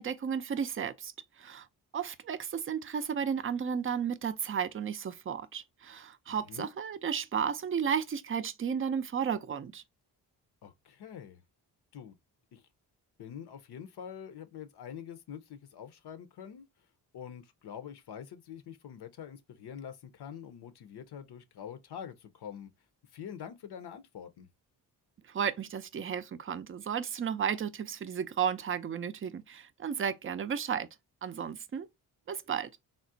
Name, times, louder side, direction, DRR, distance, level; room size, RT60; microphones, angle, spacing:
voice 1, 0.0-1.7 1.9-9.8 25.3-30.9 31.2-31.9 32.3-32.7, right 7 dB, 30° right, 0.4 m, -33 dB
voice 2, 6.3-6.7 10.6-11.4 11.9-12.2 12.5-12.6 13.2-16.7 17.1-22.7 23.1-24.5, left 8 dB, 65° left, 0.6 m, -45 dB
3.6 x 2.1 x 2.5 m
cardioid pair, 60°, 42 cm